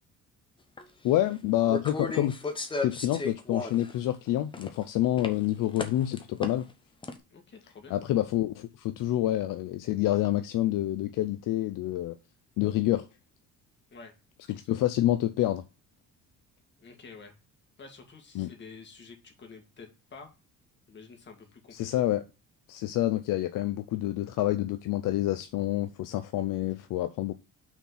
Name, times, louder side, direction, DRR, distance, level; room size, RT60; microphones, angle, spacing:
sound 1, 0.8-0.9 1.7-3.9 4.3-4.8 5.2-5.3 5.8-6.7 7.0-7.1, left 3 dB, 15° left, 0.8 m, -34 dB
voice 1, 1.0-2.3 2.8-6.7 7.9-12.2 12.6-13.0 14.5-15.6 18.4-18.5 21.7-22.2 22.7-27.3, left 14 dB, 70° left, 0.6 m, -28 dB
voice 2, 7.3-7.9 13.9-14.1 14.5-14.8 16.8-17.4 17.8-20.3 20.9-22.1, left 4 dB, 35° left, 2.0 m, -49 dB
6.0 x 4.4 x 5.7 m
cardioid pair, 150°, 33 cm